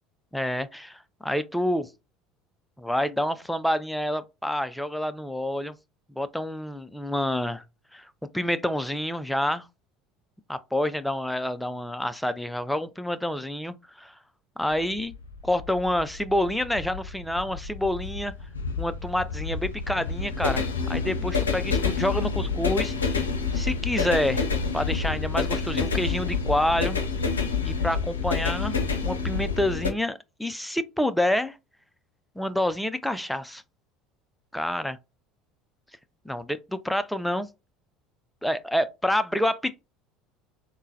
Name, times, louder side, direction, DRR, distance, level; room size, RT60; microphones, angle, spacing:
voice 1, 0.3-1.9 2.8-5.7 6.2-7.6 7.9-9.7 10.5-14.1 14.6-15.1 15.4-18.3 18.8-23.3 23.5-24.5 24.7-27.0 27.6-28.8 29.0-31.6 32.4-33.6 34.5-34.9 36.3-37.5 38.4-39.8, left 1 dB, 5° left, 0.4 m, -28 dB
sound 1, 14.7-29.9, left 5 dB, 85° left, 0.5 m, -28 dB
3.7 x 2.1 x 2.7 m
figure-of-eight pair, 70°, 0 cm